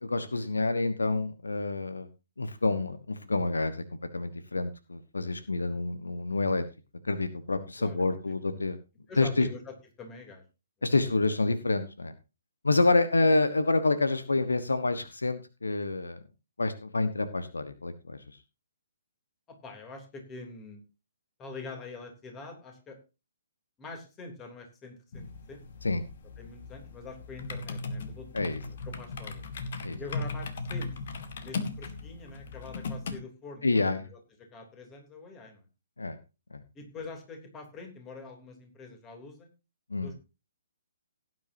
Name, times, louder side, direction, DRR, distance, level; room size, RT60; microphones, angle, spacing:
voice 1, 0.0-2.1 2.4-3.8 4.1-6.6 7.0-8.8 9.2-9.5 10.8-12.1 12.6-16.2 16.6-18.2 25.8-26.0 28.3-28.6 29.8-30.0 33.6-34.1 36.0-36.2 36.5-36.6 39.9-40.1, left 3 dB, 70° left, 11 dB, 1.3 m, -28 dB
voice 2, 9.1-10.4 19.5-20.8 21.4-23.0 23.8-25.6 26.4-29.4 30.0-30.9 31.4-33.8 34.1-34.2 34.5-35.6 36.7-39.5 40.0-40.2, left 3 dB, 15° left, 4 dB, 3.2 m, -45 dB
sound 1, 25.1-33.2, left 3 dB, 45° left, 1.9 m, -38 dB
17.5 x 9.7 x 2.8 m, 0.29 s
figure-of-eight pair, 130°, 0 cm